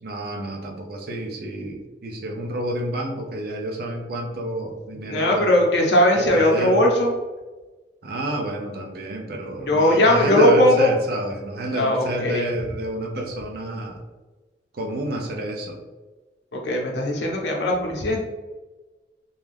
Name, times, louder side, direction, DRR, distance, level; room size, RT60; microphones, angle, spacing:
voice 1, 0.0-5.6 6.1-6.8 8.0-14.0 14.7-15.8, right 1 dB, 55° right, 2 dB, 0.5 m, -29 dB
voice 2, 4.9-7.1 9.6-10.9 11.7-12.5 16.5-18.3, left 1 dB, 70° left, -1 dB, 0.7 m, -19 dB
2.5 x 2.3 x 3.3 m, 1.2 s
head